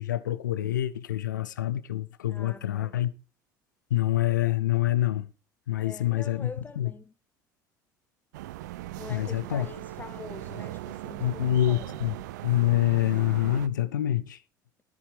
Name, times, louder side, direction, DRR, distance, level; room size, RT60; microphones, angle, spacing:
voice 1, 0.0-3.1 3.9-5.3 5.7-6.5 6.8-6.9 9.1-9.7 11.2-12.1 12.4-14.4, left 13 dB, 75° left, 0.7 m, -26 dB
voice 2, 2.3-3.0 5.8-7.1 9.0-12.3, left 4 dB, 20° left, 1.3 m, -44 dB
sound 1, 8.3-13.7, right 15 dB, 70° right, 0.6 m, -39 dB
13.5 x 7.3 x 5.0 m
figure-of-eight pair, 65°, 10 cm